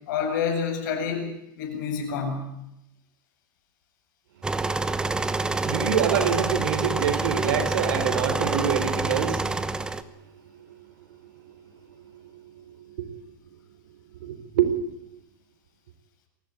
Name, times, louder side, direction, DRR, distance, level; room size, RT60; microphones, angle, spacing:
voice 1, 0.1-1.3 1.6-2.5, left 6 dB, 65° left, 4 dB, 7.9 m, -28 dB
sound 1, 4.4-10.0, right 3 dB, 5° right, 1.0 m, -27 dB
voice 2, 4.6-10.1 10.3-11.6 12.1-13.1 14.2-15.0, right 8 dB, 75° right, 10 dB, 4.1 m, -28 dB
23.5 x 16.5 x 9.3 m, 0.85 s
supercardioid pair, 145°, 11 cm